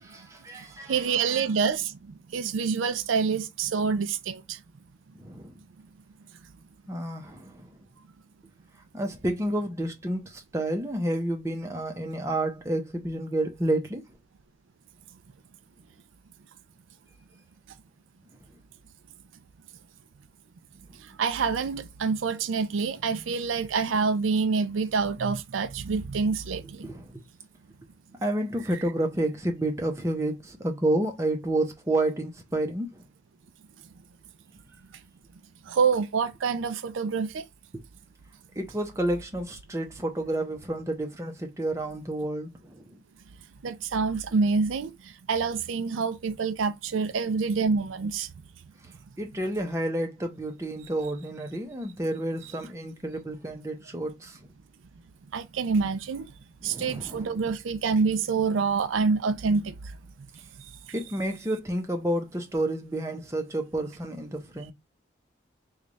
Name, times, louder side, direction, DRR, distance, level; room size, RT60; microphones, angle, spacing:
voice 1, 0.0-1.5 5.1-5.5 6.9-7.7 8.9-14.0 26.8-27.2 28.2-33.0 37.7-37.8 38.6-43.0 49.2-54.4 56.6-57.4 60.9-64.7, right 1 dB, 15° right, 0.7 m, -30 dB
voice 2, 0.9-4.6 21.0-26.9 35.7-37.4 43.6-48.3 55.3-56.3 56.6-59.7, right 5 dB, 90° right, 0.4 m, -27 dB
3.2 x 2.4 x 3.9 m
head